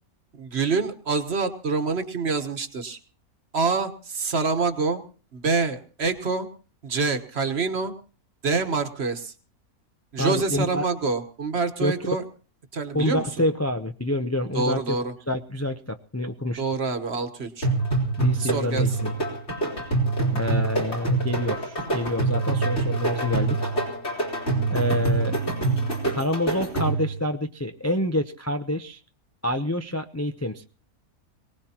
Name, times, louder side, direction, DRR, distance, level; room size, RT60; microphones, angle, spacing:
voice 1, 0.3-3.0 3.5-5.0 5.3-6.5 6.8-7.9 8.4-9.3 10.1-12.2 12.7-13.2 14.5-15.1 16.6-17.7 18.4-19.0, right 4 dB, 45° right, 9 dB, 1.5 m, -26 dB
voice 2, 10.2-10.8 11.8-11.9 12.9-14.8 15.3-16.6 18.2-19.1 20.3-23.7 24.7-25.4 26.1-29.0 29.4-30.7, left 1 dB, 25° left, 5 dB, 0.3 m, -27 dB
sound 1, 17.6-27.2, right 3 dB, 50° left, 4.4 m, -25 dB
23.0 x 18.5 x 2.9 m, 0.37 s
omnidirectional pair, 1.5 m